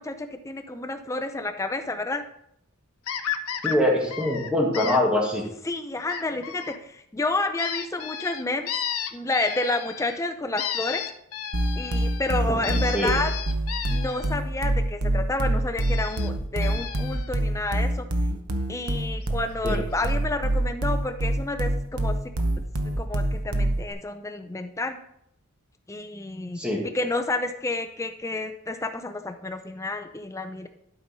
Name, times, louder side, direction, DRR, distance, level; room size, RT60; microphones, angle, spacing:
voice 1, 0.0-2.3 5.7-8.7 9.1-11.0 11.8-13.3 13.9-18.1 18.7-22.2 23.0-25.0 25.9-26.6 26.9-30.7, left 2 dB, 15° left, 8 dB, 0.4 m, -30 dB
sound 1, 3.1-3.8 4.1-5.0 6.1-6.8 7.6-10.2 10.6-14.3 15.8-16.3 16.6-17.3 19.3-19.4 19.7-19.8 20.1-20.2, left 9 dB, 75° left, 0.7 m, -33 dB
voice 2, 3.6-5.5 12.5-13.1 19.6-19.8 26.5-26.8, left 1 dB, 5° right, -2 dB, 1.7 m, -24 dB
sound 2, 11.5-23.9, right 1 dB, 90° right, 1.0 m, -25 dB
11.5 x 5.2 x 4.0 m, 0.74 s
head